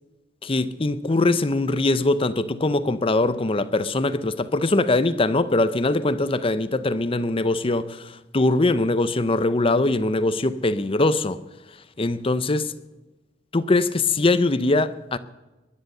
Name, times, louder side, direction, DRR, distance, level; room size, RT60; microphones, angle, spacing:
voice 1, 0.4-11.4 12.0-12.7 13.5-15.2, left 2 dB, 30° left, 0.7 m, -22 dB
20.0 x 10.5 x 6.7 m
head